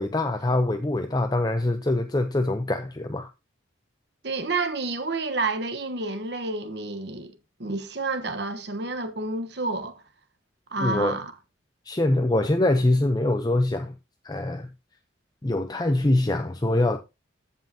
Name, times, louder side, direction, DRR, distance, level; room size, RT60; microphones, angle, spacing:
voice 1, 0.0-3.3 10.8-11.2 11.9-13.9 14.2-14.7 15.4-17.0, left 1 dB, 20° left, 0.6 m, -24 dB
voice 2, 4.2-7.3 7.6-10.0 10.7-11.3, right 3 dB, 55° right, 1.1 m, -29 dB
15.0 x 5.6 x 2.7 m
head